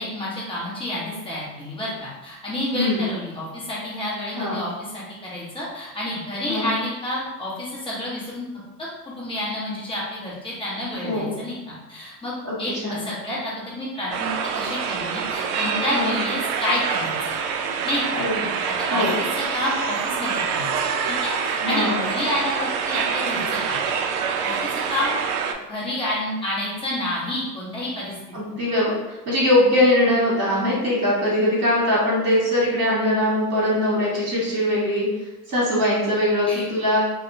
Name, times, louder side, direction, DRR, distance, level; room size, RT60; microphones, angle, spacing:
voice 1, 0.0-8.5 9.2-12.3 12.6-17.3 17.8-18.2 18.8-19.2 19.5-20.7 21.1-23.8 24.4-25.1 25.7-28.1 36.4-36.7, left 1 dB, 10° left, -6 dB, 1.0 m, -29 dB
voice 2, 2.7-3.1 4.3-4.6 6.4-6.7 11.0-11.4 12.4-13.0 15.9-16.1 18.1-18.5 18.9-19.2 21.6-22.0 28.3-35.1 35.5-37.0, left 1 dB, 30° right, -7 dB, 1.3 m, -21 dB
sound 1, 14.1-25.5, right 6 dB, 65° right, 0.5 m, -26 dB
2.7 x 2.2 x 2.6 m, 1.0 s
hypercardioid pair, 90°, 49 cm